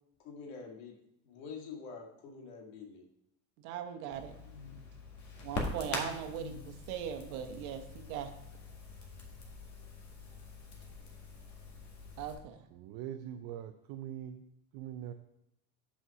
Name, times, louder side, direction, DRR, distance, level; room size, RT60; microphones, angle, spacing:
voice 1, 0.2-1.0 1.2-3.0 4.1-4.8 6.0-6.8, left 5 dB, 80° left, 2 dB, 1.8 m, -47 dB
voice 2, 3.6-4.3 5.4-6.5 6.9-8.3 12.2-12.6, right 9 dB, 75° right, 7 dB, 1.1 m, -39 dB
Crackle, 4.1-12.3, left 3 dB, 40° left, 1.8 m, -44 dB
voice 3, 12.7-14.4 14.7-15.1, right 11 dB, 60° right, 7 dB, 0.6 m, -42 dB
5.6 x 5.6 x 5.7 m, 0.79 s
supercardioid pair, 115°, 42 cm